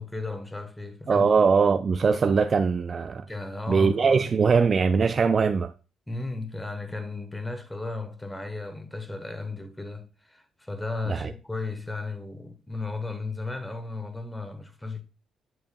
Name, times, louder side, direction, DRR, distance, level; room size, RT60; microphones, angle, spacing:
voice 1, 0.0-1.3 3.3-4.3 6.1-15.0, left 3 dB, 10° left, 1.2 m, -35 dB
voice 2, 1.1-3.3 3.7-5.7 11.1-11.3, right 5 dB, 40° right, 0.4 m, -21 dB
7.8 x 7.2 x 2.3 m
cardioid pair, 90°, 0 cm